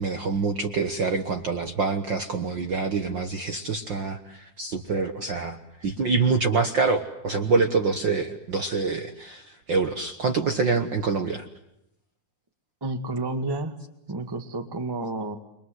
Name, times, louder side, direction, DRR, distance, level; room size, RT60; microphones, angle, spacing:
voice 1, 0.0-11.4, right 4 dB, 50° right, 7 dB, 1.5 m, -26 dB
voice 2, 12.8-13.8 14.1-15.4, right 2 dB, 10° right, 8 dB, 1.1 m, -30 dB
29.5 x 23.5 x 7.8 m, 0.83 s
omnidirectional pair, 3.6 m